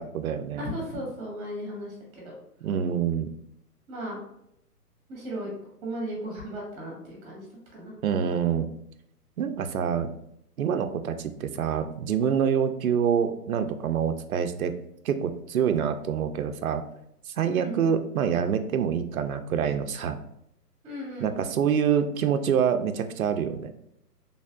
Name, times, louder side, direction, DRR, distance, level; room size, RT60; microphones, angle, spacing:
voice 1, 0.0-0.6 2.6-3.3 8.0-8.7 9.4-10.1 10.6-14.8 15.0-16.8 17.3-20.2 21.2-23.7, right 7 dB, 60° right, 8 dB, 0.5 m, -26 dB
voice 2, 0.6-2.3 3.9-4.2 5.1-5.5 5.8-7.4 7.7-7.9 17.5-17.8 20.8-21.3, right 1 dB, 25° right, -3 dB, 1.5 m, -35 dB
4.1 x 3.4 x 2.4 m, 0.76 s
figure-of-eight pair, 130°, 48 cm